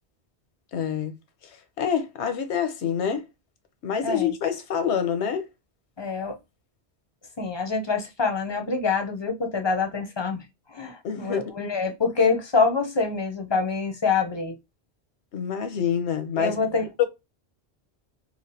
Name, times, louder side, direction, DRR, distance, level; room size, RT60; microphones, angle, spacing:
voice 1, 0.7-1.1 1.8-3.2 3.8-5.5 11.0-11.5 15.3-16.6 17.0-17.1, left 8 dB, 85° left, 1.0 m, -26 dB
voice 2, 6.0-6.4 7.4-10.4 10.7-14.6 16.4-16.9, left 4 dB, 35° left, 0.4 m, -25 dB
3.2 x 2.5 x 2.6 m
omnidirectional pair, 1.1 m